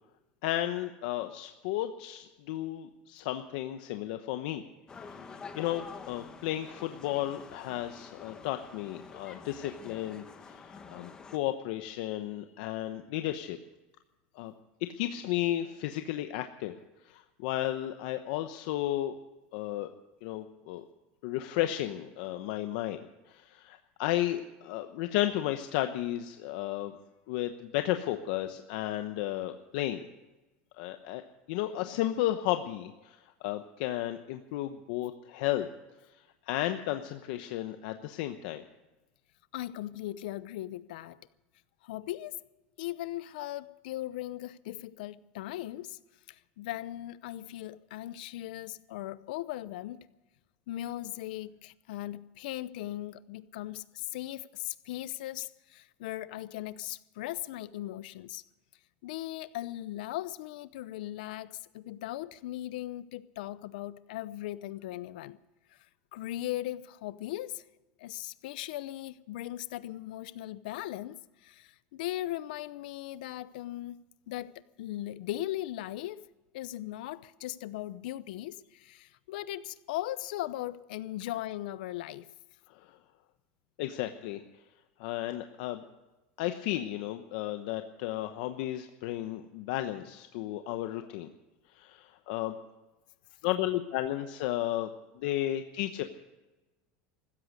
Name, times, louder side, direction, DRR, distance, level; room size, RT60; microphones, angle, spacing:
voice 1, 0.4-4.6 5.0-13.6 14.3-14.5 15.0-16.7 17.0-19.2 19.5-19.9 20.2-20.8 21.2-23.0 23.3-27.0 27.3-30.0 30.8-31.2 31.5-35.7 36.2-38.6 82.7-83.0 83.8-84.4 85.0-85.8 86.4-91.3 91.7-92.5 93.4-94.9 95.1-96.0, left 14 dB, 70° left, 1.0 m, -33 dB
sound 1, 4.9-11.4, left 5 dB, 15° left, 1.4 m, -48 dB
voice 2, 39.5-41.2 41.8-42.4 42.8-46.0 46.3-50.1 50.7-58.4 59.0-65.4 65.7-65.8 66.1-67.6 68.0-74.0 74.3-76.2 76.5-82.3, left 14 dB, 90° left, 0.7 m, -38 dB
16.0 x 13.5 x 6.6 m
cardioid pair, 160°, 5 cm